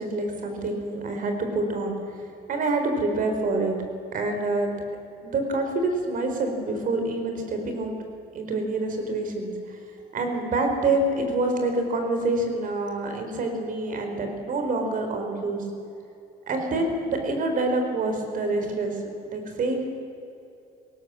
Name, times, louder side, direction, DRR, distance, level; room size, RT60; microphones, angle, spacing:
voice 1, 0.0-3.8 4.1-4.7 5.2-7.9 8.3-9.8 10.1-15.7 16.4-19.8, right 2 dB, 55° right, 5 dB, 4.4 m, -27 dB
19.5 x 19.0 x 7.7 m, 2.7 s
cardioid pair, 110°, 17 cm